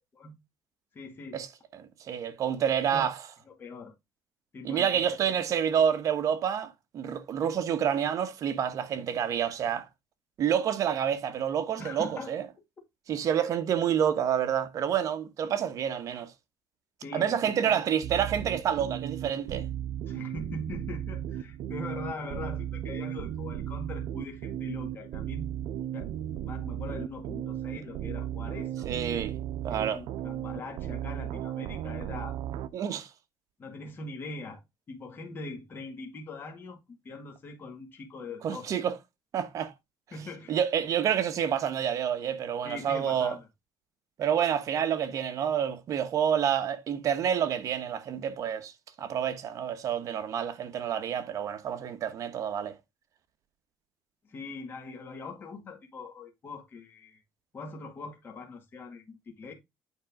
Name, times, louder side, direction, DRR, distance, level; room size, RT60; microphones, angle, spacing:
voice 1, 0.9-1.4 2.9-3.1 3.5-3.9 4.5-5.4 11.8-12.3 17.0-17.8 20.1-25.5 25.9-26.1 26.4-28.9 29.7-32.4 33.6-34.6 34.9-38.8 39.6-39.7 40.1-40.6 42.6-43.5 54.2-57.2 57.5-59.5, left 3 dB, 30° left, 2.1 m, -42 dB
voice 2, 1.7-3.1 4.6-9.9 10.4-12.4 13.1-16.3 17.1-19.7 28.8-29.3 29.6-30.0 32.7-33.1 38.4-38.9 39.3-39.7 40.5-43.3 44.2-48.7 49.0-52.8, right 8 dB, 45° right, 1.1 m, -28 dB
sound 1, 18.0-32.7, right 10 dB, 65° right, 0.7 m, -35 dB
8.7 x 5.1 x 3.6 m
cardioid pair, 150°, 8 cm